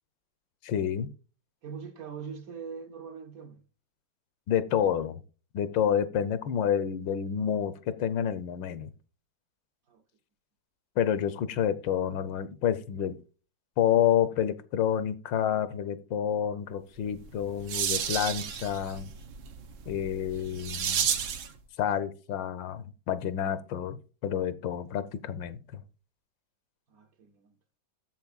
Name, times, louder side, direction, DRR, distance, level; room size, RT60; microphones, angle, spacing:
voice 1, 0.6-1.1 4.5-5.2 5.5-7.7 8.0-8.9 11.0-13.2 13.8-19.1 19.9-21.1 21.8-25.8, left 9 dB, 75° left, 1.4 m, -29 dB
voice 2, 1.6-3.6 9.9-10.0 26.9-27.5, right 6 dB, 60° right, 1.0 m, -42 dB
sound 1, 17.1-21.6, right 8 dB, 85° right, 1.7 m, -32 dB
10.5 x 7.6 x 2.4 m
omnidirectional pair, 2.1 m